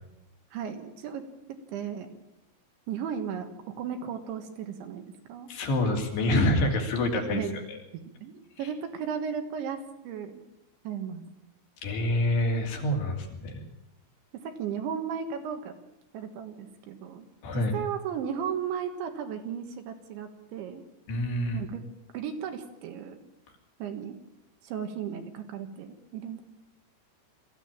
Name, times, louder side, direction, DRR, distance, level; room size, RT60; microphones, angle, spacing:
voice 1, 0.5-2.1 2.9-3.5 3.8-5.5 7.3-7.6 7.9-10.4 10.9-11.2 14.3-15.8 16.1-17.3 17.5-20.8 21.5-21.8 22.1-23.2 23.8-24.2 24.6-26.4, right 7 dB, 70° right, 6 dB, 3.8 m, -35 dB
voice 2, 5.5-7.4 7.7-7.8 11.8-13.6 17.4-17.8 21.1-21.6, left 1 dB, 60° left, 2 dB, 4.5 m, -26 dB
23.0 x 14.5 x 8.9 m, 0.88 s
omnidirectional pair, 5.8 m